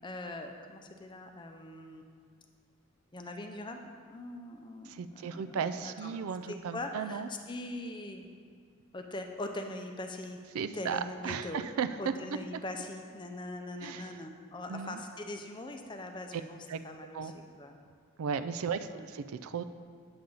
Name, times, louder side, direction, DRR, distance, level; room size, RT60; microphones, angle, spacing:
voice 1, 0.0-2.2 3.1-6.2 6.5-8.3 8.9-10.4 10.7-11.6 12.0-16.6 16.8-17.7 18.9-19.1, left 2 dB, 20° left, 4 dB, 0.5 m, -42 dB
voice 2, 4.9-7.3 10.5-11.9 13.8-14.1 14.7-15.0 16.7-16.8 17.1-17.3 18.2-19.6, right 6 dB, 85° right, 11 dB, 0.4 m, -35 dB
8.7 x 7.1 x 3.9 m, 2.1 s
head